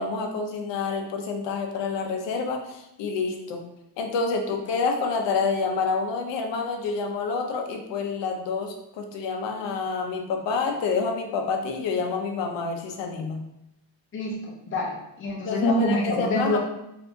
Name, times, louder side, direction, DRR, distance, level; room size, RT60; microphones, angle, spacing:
voice 1, 0.0-3.6 4.0-13.4 15.4-16.6, left 4 dB, 65° left, 3 dB, 0.7 m, -28 dB
voice 2, 14.1-16.6, left 1 dB, 25° left, -2 dB, 0.7 m, -26 dB
3.4 x 2.7 x 2.6 m, 0.85 s
cardioid pair, 120°, 46 cm